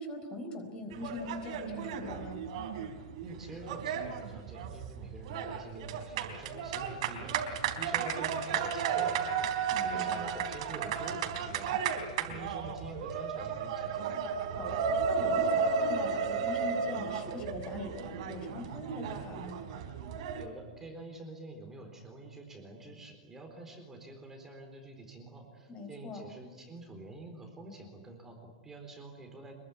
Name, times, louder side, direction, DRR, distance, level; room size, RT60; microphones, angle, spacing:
voice 1, 0.0-2.4 9.7-10.1 14.5-19.6 25.7-26.2, left 2 dB, 20° left, 6 dB, 4.3 m, -42 dB
sound 1, 0.9-20.5, right 6 dB, 55° right, 3.9 m, -33 dB
voice 2, 3.2-14.2 20.4-29.5, right 2 dB, 10° right, 3 dB, 4.0 m, -47 dB
27.0 x 22.0 x 9.7 m, 1.3 s
supercardioid pair, 170°, 4 cm